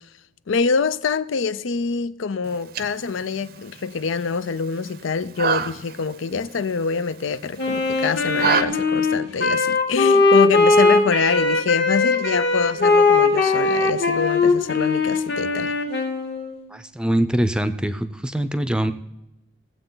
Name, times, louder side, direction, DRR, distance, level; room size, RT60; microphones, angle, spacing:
voice 1, 0.5-15.7, left 5 dB, 85° left, 0.5 m, -25 dB
sound 1, 2.4-8.6, right 6 dB, 50° right, 0.6 m, -29 dB
Wind instrument woodwind instrument, 7.6-16.6, left 3 dB, 55° left, 1.8 m, -19 dB
voice 2, 16.7-18.9, right 1 dB, 5° right, 0.5 m, -23 dB
17.5 x 7.8 x 3.9 m
head